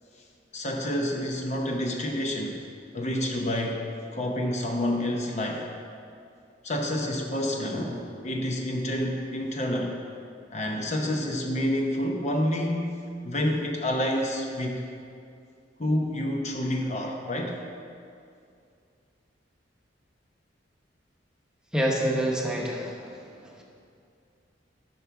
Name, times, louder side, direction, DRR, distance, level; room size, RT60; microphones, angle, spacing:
voice 1, 0.5-2.6 2.9-3.9 4.1-5.7 6.6-10.0 10.5-14.8 15.8-17.6, left 1 dB, 40° left, 1 dB, 0.8 m, -28 dB
voice 2, 21.7-23.2 23.4-23.6, equal, 5° right, -2 dB, 1.0 m, -27 dB
10.5 x 5.9 x 4.6 m, 2.4 s
head